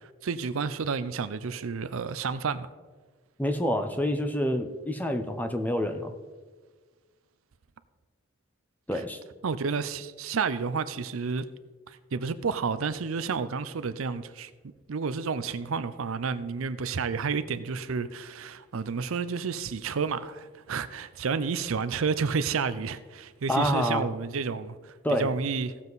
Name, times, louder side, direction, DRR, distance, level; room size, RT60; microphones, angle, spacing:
voice 1, 0.2-2.7 8.9-9.0 9.4-11.4 11.9-14.5 14.9-25.7, right 5 dB, 75° right, 0.5 m, -30 dB
voice 2, 3.4-6.1 8.9-9.2 23.5-24.1 25.0-25.3, equal, 10° left, 0.6 m, -27 dB
17.0 x 7.2 x 4.0 m
head